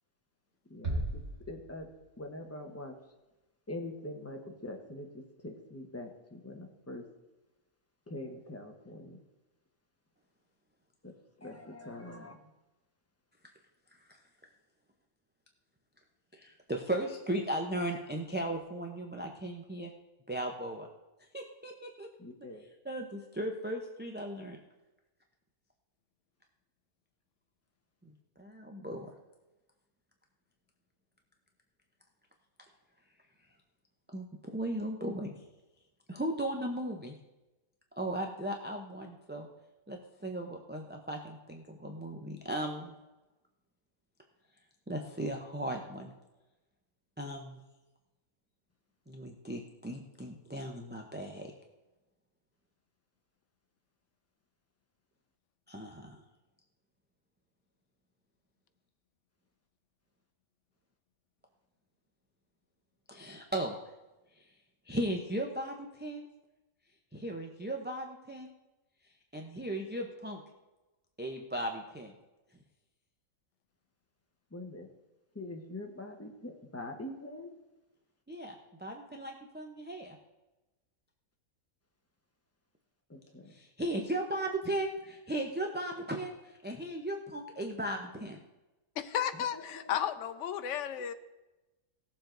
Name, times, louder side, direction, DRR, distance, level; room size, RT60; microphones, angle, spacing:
voice 1, 0.7-1.2 1.5-1.9 2.2-2.9 3.7-7.1 8.1-9.2 11.0-11.1 11.4-12.4 22.2-22.6 74.5-74.9 75.3-77.5 83.1-83.5 89.5-89.9, left 1 dB, 10° left, 3 dB, 1.0 m, -44 dB
sound 1, 0.8-2.5, right 1 dB, 55° right, 1.8 m, -37 dB
voice 2, 16.4-19.9 20.3-20.9 21.3-22.1 22.8-24.6 28.4-29.1 34.1-34.3 34.5-35.3 36.1-37.1 38.0-39.5 39.9-42.9 44.9-46.1 47.2-47.6 49.1-51.5 55.7-56.2 63.1-63.8 64.9-66.3 67.1-68.5 69.3-70.4 71.2-72.1 78.3-80.2 83.5-88.4, right 1 dB, 10° right, 1 dB, 0.5 m, -37 dB
voice 3, 89.0-91.1, left 9 dB, 65° left, 9 dB, 1.0 m, -33 dB
17.5 x 7.3 x 3.9 m, 1.1 s
omnidirectional pair, 1.5 m